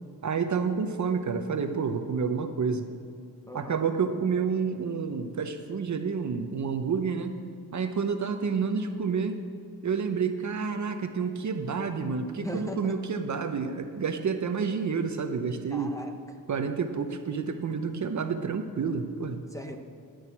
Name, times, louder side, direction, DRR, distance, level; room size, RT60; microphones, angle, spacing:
voice 1, 0.2-2.9 3.5-7.4 7.7-9.4 9.8-15.9 16.5-19.5, right 5 dB, 45° right, 6 dB, 0.8 m, -29 dB
voice 2, 3.5-3.8 12.4-13.0 15.7-16.4 19.5-19.8, equal, 10° left, 5 dB, 0.8 m, -38 dB
11.0 x 6.4 x 8.5 m, 2.3 s
wide cardioid pair, 120°, 40 cm